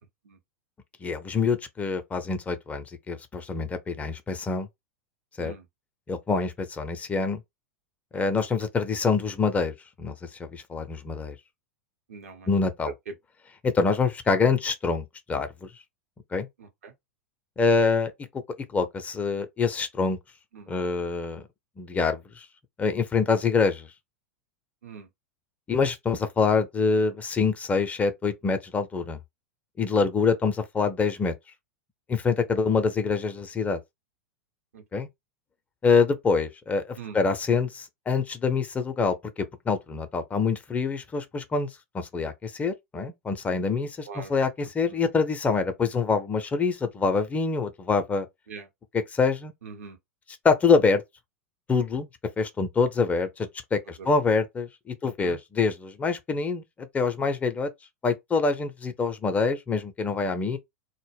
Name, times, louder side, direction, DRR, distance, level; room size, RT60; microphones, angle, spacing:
voice 1, 1.0-4.7 5.4-5.5 6.1-7.4 8.1-10.1 10.4-11.4 12.5-12.9 13.6-15.7 16.3-16.5 17.6-18.1 18.7-20.2 20.7-21.4 21.8-22.5 22.8-23.9 25.7-29.2 29.8-31.3 32.1-33.8 34.9-35.1 35.8-41.7 41.9-48.3 48.9-49.5 50.4-51.0 51.7-52.1 52.4-56.6 56.9-57.7 58.0-60.6, left 4 dB, 15° left, 0.4 m, -25 dB
voice 2, 12.1-12.5 13.1-13.2 16.6-16.9 20.5-20.7 24.8-25.1 32.5-32.6 34.7-35.0 37.0-37.2 44.1-44.3 44.9-45.0 48.5-48.7 49.6-50.0 54.0-54.1 55.2-55.4, right 5 dB, 70° right, 0.7 m, -42 dB
2.1 x 2.0 x 3.2 m
figure-of-eight pair, 90°, 8 cm